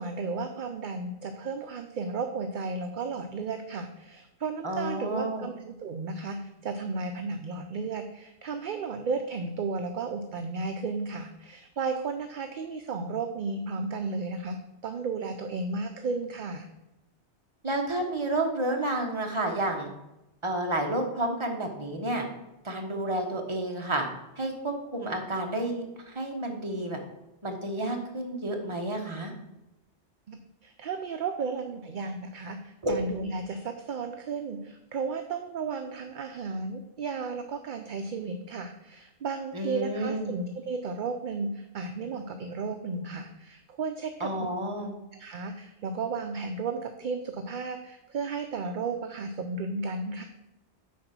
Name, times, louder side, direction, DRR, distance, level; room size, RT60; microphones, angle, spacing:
voice 1, 0.0-14.6 14.8-16.7 30.3-44.3 45.1-50.2, right 4 dB, 55° right, 6 dB, 0.7 m, -34 dB
voice 2, 4.6-5.5 17.6-19.9 20.4-22.3 22.6-24.1 24.4-27.0 27.4-29.3 32.8-32.9 39.5-40.4 44.2-44.9, right 1 dB, 25° right, 1 dB, 1.2 m, -30 dB
9.4 x 4.0 x 6.0 m, 0.94 s
omnidirectional pair, 1.2 m